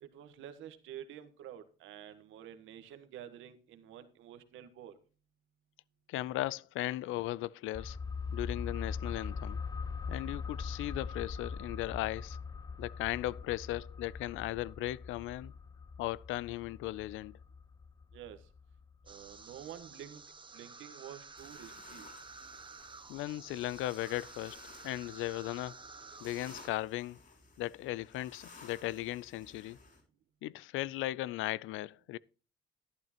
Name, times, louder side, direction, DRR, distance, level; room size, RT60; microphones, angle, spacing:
voice 1, 0.0-5.0 18.1-18.4 19.1-20.2 20.5-22.1, right 10 dB, 90° right, 1.3 m, -49 dB
voice 2, 6.1-8.0 8.3-9.6 10.1-12.4 12.8-15.5 16.0-17.4 23.1-25.8 26.2-27.2 27.6-29.8 30.4-32.2, left 16 dB, 85° left, 0.4 m, -37 dB
sound 1, 7.7-19.1 19.4-19.5, left 5 dB, 20° left, 0.4 m, -42 dB
sound 2, 19.1-26.7, right 4 dB, 25° right, 1.3 m, -52 dB
sound 3, 21.3-30.0, left 4 dB, 45° left, 6.4 m, -57 dB
12.0 x 11.0 x 2.9 m
cardioid pair, 90°, 20 cm